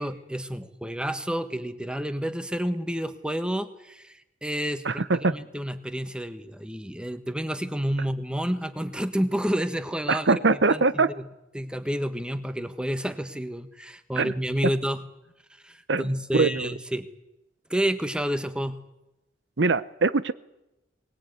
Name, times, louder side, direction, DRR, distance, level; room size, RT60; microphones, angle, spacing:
voice 1, 0.0-10.4 10.7-11.3 11.5-15.0 15.6-17.1 17.7-18.8, equal, 5° right, 10 dB, 1.4 m, -30 dB
voice 2, 4.8-5.3 10.1-11.1 14.2-14.3 14.6-14.7 15.9-16.7 19.6-20.3, right 3 dB, 70° right, 15 dB, 0.8 m, -23 dB
23.0 x 19.5 x 9.5 m, 0.93 s
head